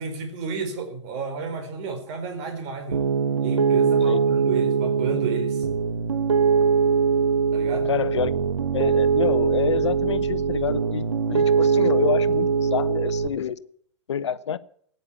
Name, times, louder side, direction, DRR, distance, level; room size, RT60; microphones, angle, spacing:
voice 1, 0.0-3.0 3.4-5.6 7.5-7.9, right 4 dB, 40° right, 6 dB, 4.4 m, -31 dB
Piano, 2.9-13.3, right 6 dB, 75° right, 1.1 m, -22 dB
voice 2, 7.9-13.6 14.1-14.6, left 8 dB, 70° left, 17 dB, 0.9 m, -28 dB
16.0 x 9.7 x 8.3 m, 0.62 s
figure-of-eight pair, 100°, 15 cm